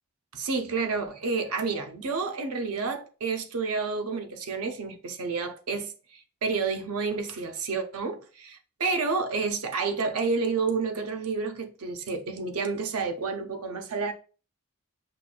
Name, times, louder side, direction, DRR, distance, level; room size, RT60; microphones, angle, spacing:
voice 1, 0.3-14.1, right 4 dB, 85° right, 0.6 m, -30 dB
5.8 x 2.4 x 2.2 m
head